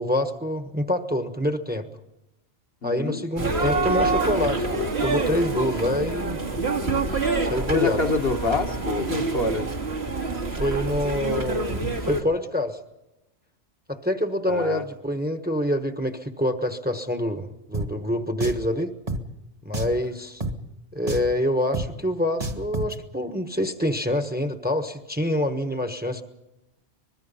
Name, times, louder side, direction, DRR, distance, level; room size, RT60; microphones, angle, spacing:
voice 1, 0.0-1.9 2.8-6.4 7.4-8.0 10.5-12.8 13.9-18.9 19.6-20.4 20.9-26.2, left 1 dB, 10° right, 7 dB, 1.2 m, -26 dB
voice 2, 2.8-3.2 7.7-9.7 14.5-14.8, left 3 dB, 60° left, 3 dB, 1.7 m, -26 dB
sound 1, 3.4-12.2, right 3 dB, 70° right, 2.3 m, -26 dB
Drum, 17.7-17.9 18.4-18.7 19.1-19.2 19.7-20.0 20.4-20.5 21.1-21.3 21.7-21.9 22.4-22.9, right 1 dB, 35° right, 1.6 m, -29 dB
24.0 x 21.5 x 5.6 m, 0.94 s
omnidirectional pair, 1.1 m